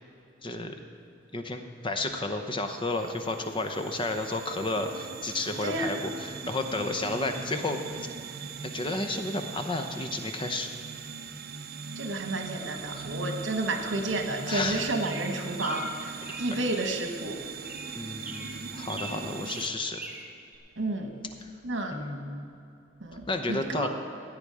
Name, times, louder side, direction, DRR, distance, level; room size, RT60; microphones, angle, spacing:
voice 1, 0.4-0.8 1.3-8.1 8.7-10.7 12.9-13.1 14.5-14.9 16.5-16.6 17.9-20.0 21.9-22.5 23.3-23.9, left 2 dB, 25° left, 6 dB, 0.8 m, -32 dB
sound 1, 1.7-19.7, right 5 dB, 55° right, 0.6 m, -40 dB
voice 2, 5.6-6.0 11.9-17.4 20.8-21.1 21.6-22.0 23.0-23.9, right 2 dB, 75° right, 5 dB, 1.4 m, -31 dB
sound 2, 15.0-17.1 17.6-20.6, right 3 dB, 10° right, 1.2 m, -42 dB
16.5 x 9.0 x 4.9 m, 2.6 s
head